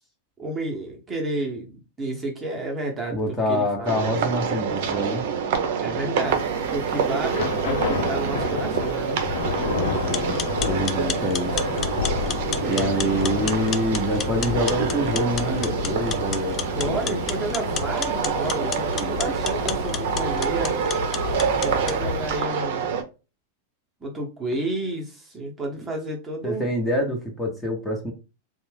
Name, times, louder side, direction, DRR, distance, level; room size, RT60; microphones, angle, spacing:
voice 1, 0.4-3.9 5.8-6.4 6.7-9.2 12.6-13.5 16.7-20.8 21.6-22.9 24.0-26.6, right 2 dB, 20° right, 0 dB, 0.9 m, -31 dB
voice 2, 3.1-5.3 9.6-11.5 12.6-16.7 19.0-19.1 26.4-28.1, equal, 10° left, -1 dB, 0.9 m, -26 dB
sound 1, 3.9-23.0, right 6 dB, 65° right, 0.6 m, -27 dB
Thunder / Rain, 6.2-22.5, left 4 dB, 70° left, 0.8 m, -31 dB
sound 2, 10.0-22.0, left 8 dB, 30° left, 0.4 m, -33 dB
2.5 x 2.3 x 3.2 m, 0.31 s
hypercardioid pair, 105°, 0 cm